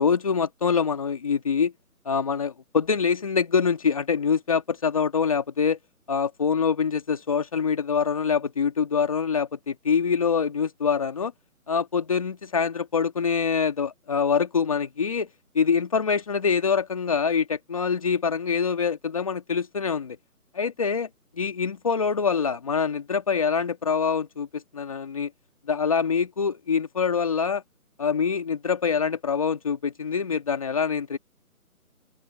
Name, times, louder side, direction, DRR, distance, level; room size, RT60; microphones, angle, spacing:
voice 1, 0.0-1.7 2.1-5.8 6.1-11.3 11.7-15.3 15.5-20.2 20.6-21.1 21.3-25.3 25.7-27.6 28.0-31.2, left 6 dB, 25° left, 2.1 m, -25 dB
open air
figure-of-eight pair, 175°, 45 cm